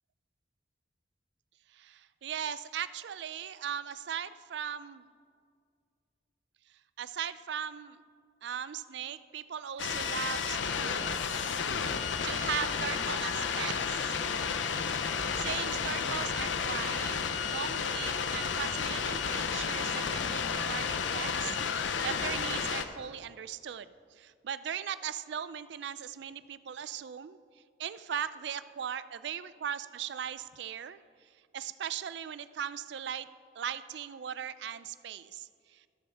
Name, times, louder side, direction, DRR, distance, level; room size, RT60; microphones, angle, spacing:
voice 1, 1.7-5.0 7.0-8.0 8.4-11.2 12.2-14.1 15.4-17.2 17.4-27.4 27.8-31.0 31.5-33.3 33.6-35.8, right 8 dB, 70° right, 14 dB, 0.4 m, -38 dB
sound 1, 9.8-22.8, left 6 dB, 85° left, 0.6 m, -32 dB
13.5 x 5.6 x 6.7 m, 2.2 s
head